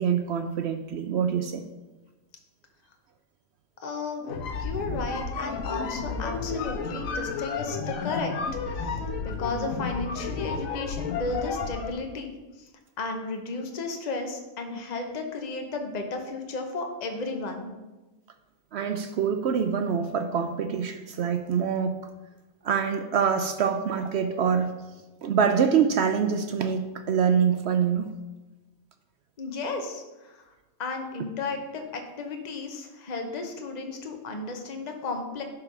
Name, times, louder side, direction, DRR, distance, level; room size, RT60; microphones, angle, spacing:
voice 1, 0.0-1.6 18.7-22.0 22.6-24.7 25.2-28.1, right 7 dB, 65° right, 8 dB, 0.7 m, -25 dB
voice 2, 3.8-4.2 4.6-8.3 8.6-12.7 13.0-17.7 29.4-30.4 30.8-35.4, left 3 dB, 35° left, 4 dB, 0.9 m, -34 dB
sound 1, 4.2-12.0, left 4 dB, 70° left, 1.2 m, -32 dB
10.5 x 3.8 x 5.9 m, 1.1 s
omnidirectional pair, 1.5 m